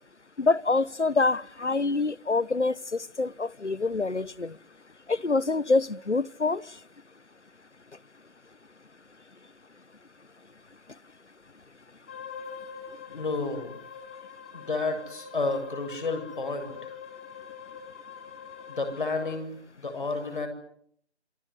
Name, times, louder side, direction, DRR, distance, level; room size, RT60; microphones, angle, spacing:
voice 1, 0.4-4.6 5.1-6.6, left 3 dB, 85° left, 1.1 m, -26 dB
sound 1, 12.1-19.4, left 6 dB, 10° left, 1.2 m, -44 dB
voice 2, 13.1-13.8 14.5-17.0 18.7-20.5, left 3 dB, 45° left, 7.5 m, -31 dB
27.5 x 19.5 x 9.9 m
figure-of-eight pair, 155°, 34 cm